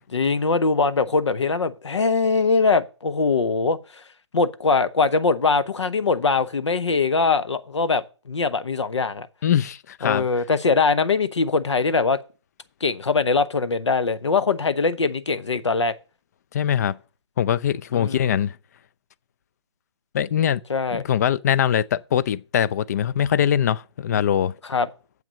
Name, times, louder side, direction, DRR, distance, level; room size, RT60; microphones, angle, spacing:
voice 1, 0.1-4.0 4.3-9.3 10.0-12.2 12.8-15.9 17.9-18.4 20.7-21.0 24.7-24.9, left 4 dB, 75° left, 0.8 m, -22 dB
voice 2, 9.4-10.3 16.5-17.0 17.4-18.6 20.1-20.6 20.9-24.5, left 9 dB, 35° left, 0.4 m, -22 dB
7.6 x 5.9 x 6.8 m
figure-of-eight pair, 140°, 15 cm